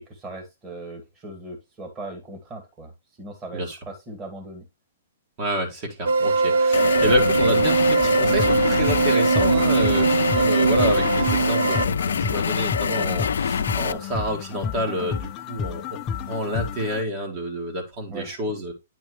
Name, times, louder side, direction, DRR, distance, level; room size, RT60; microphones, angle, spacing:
voice 1, 0.0-2.9 3.2-4.7 18.1-18.4, right 2 dB, 20° right, 2 dB, 2.1 m, -38 dB
voice 2, 5.4-16.0 16.3-18.7, equal, 35° right, 2 dB, 2.1 m, -28 dB
sound 1, 6.1-11.9, right 4 dB, 70° right, 0.8 m, -21 dB
sound 2, 6.7-13.9, left 6 dB, 85° left, 0.4 m, -25 dB
sound 3, 8.0-17.0, left 6 dB, 25° left, 0.6 m, -32 dB
9.5 x 4.4 x 3.2 m, 0.23 s
hypercardioid pair, 150°, 0 cm